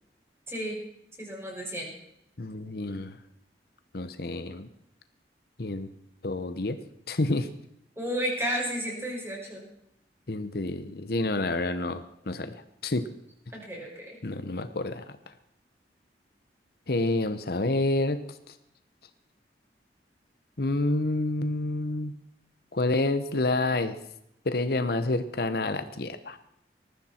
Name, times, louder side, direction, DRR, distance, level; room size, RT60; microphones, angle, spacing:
voice 1, 0.5-0.8 1.2-1.9 8.0-9.7 13.5-14.2, equal, 15° right, -2 dB, 6.0 m, -32 dB
voice 2, 2.4-3.2 3.9-4.7 5.6-5.9 6.2-6.8 7.1-7.5 10.3-13.1 14.2-15.0 16.9-18.6 20.6-22.1 22.7-24.0 24.4-26.4, left 2 dB, 60° left, 10 dB, 1.0 m, -28 dB
20.0 x 14.0 x 4.4 m, 0.77 s
head